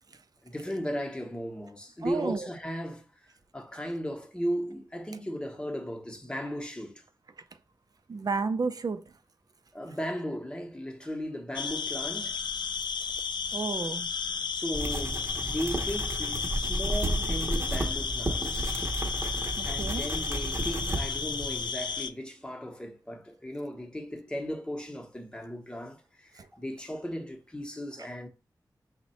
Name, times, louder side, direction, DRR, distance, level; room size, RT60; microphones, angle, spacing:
voice 1, 0.4-3.1 3.5-7.0 9.7-12.4 14.5-18.8 19.6-28.3, equal, 10° left, 0.8 m, -36 dB
voice 2, 2.0-2.5 8.1-9.0 13.5-14.1 19.6-20.0, right 4 dB, 55° right, 0.5 m, -31 dB
sound 1, 11.5-22.1, left 6 dB, 90° left, 0.3 m, -33 dB
sound 2, 14.7-21.7, right 1 dB, 40° right, 0.8 m, -33 dB
5.8 x 2.1 x 4.1 m
wide cardioid pair, 90°, 8 cm